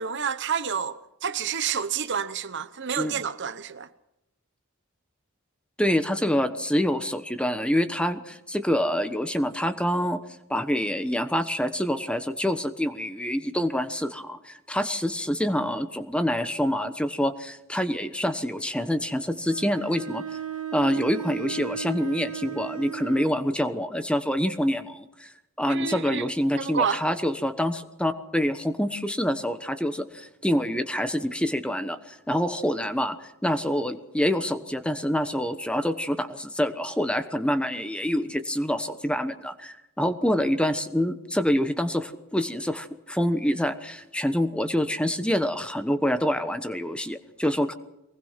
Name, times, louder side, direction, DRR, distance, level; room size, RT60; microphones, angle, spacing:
voice 1, 0.0-3.9 25.7-26.3 26.5-27.0, right 7 dB, 55° right, 1.0 m, -29 dB
voice 2, 5.8-10.2 10.5-20.2 20.7-25.3 25.6-47.7, equal, 5° left, 1.1 m, -26 dB
Bowed string instrument, 19.5-23.4, right 7 dB, 80° right, 1.8 m, -35 dB
23.5 x 19.5 x 5.9 m
head